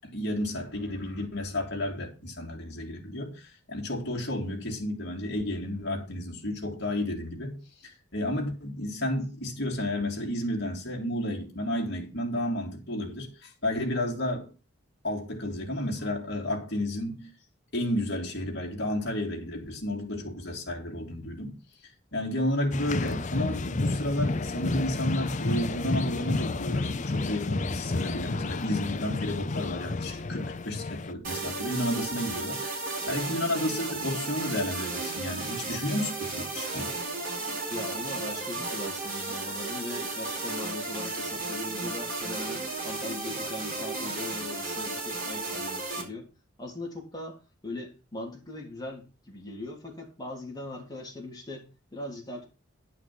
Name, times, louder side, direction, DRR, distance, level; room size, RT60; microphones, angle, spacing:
voice 1, 0.0-14.5 15.0-17.3 17.7-21.5 22.1-37.0, left 1 dB, 55° left, 3.0 m, -32 dB
sound 1, 22.7-31.1, left 3 dB, 35° left, 0.5 m, -31 dB
sound 2, 31.2-46.0, right 3 dB, 45° right, 4.6 m, -34 dB
voice 2, 37.7-46.3 46.6-52.5, left 2 dB, 20° left, 3.3 m, -40 dB
11.0 x 5.8 x 6.0 m
head